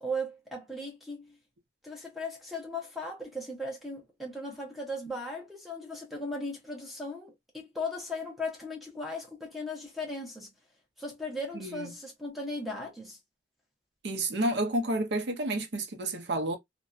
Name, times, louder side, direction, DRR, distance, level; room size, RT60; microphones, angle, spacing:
voice 1, 0.0-1.3 1.8-10.5 11.0-13.2, left 1 dB, ahead, 0.7 m, -37 dB
voice 2, 11.5-11.9 14.0-16.6, right 1 dB, 60° right, 0.6 m, -30 dB
2.6 x 2.1 x 2.3 m
head